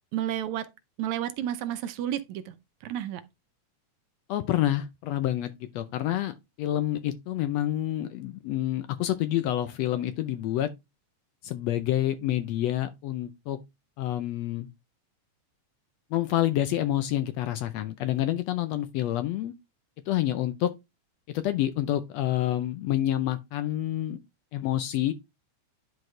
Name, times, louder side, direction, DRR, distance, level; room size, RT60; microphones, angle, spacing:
voice 1, 0.1-0.7 1.0-2.4 2.8-3.2, right 11 dB, 75° right, 2.0 m, -31 dB
voice 2, 4.3-10.7 11.4-13.6 14.0-14.7 16.1-19.5 20.1-20.7 21.3-24.2 24.5-25.1, left 13 dB, 75° left, 1.6 m, -28 dB
10.5 x 4.6 x 3.2 m
omnidirectional pair, 3.4 m